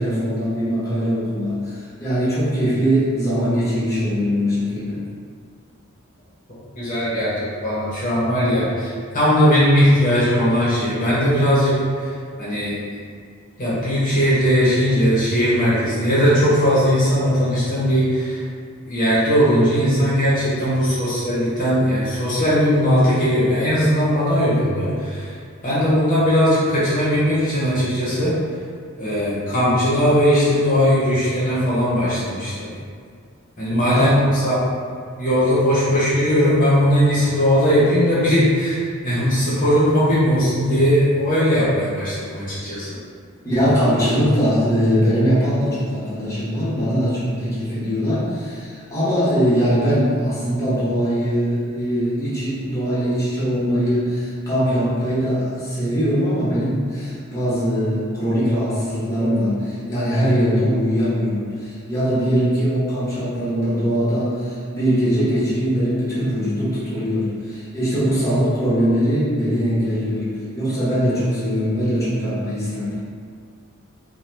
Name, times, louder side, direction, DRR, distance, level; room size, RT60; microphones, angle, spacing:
voice 1, 0.0-5.0 33.9-34.1 43.4-70.3 70.5-73.0, equal, 15° left, -12 dB, 1.0 m, -21 dB
voice 2, 6.7-11.7 12.0-12.1 12.4-12.8 13.6-18.4 18.9-25.3 25.6-28.3 29.0-32.7 33.6-34.5 35.2-42.9, equal, 40° left, -10 dB, 0.9 m, -18 dB
2.9 x 2.2 x 3.2 m, 2.1 s
head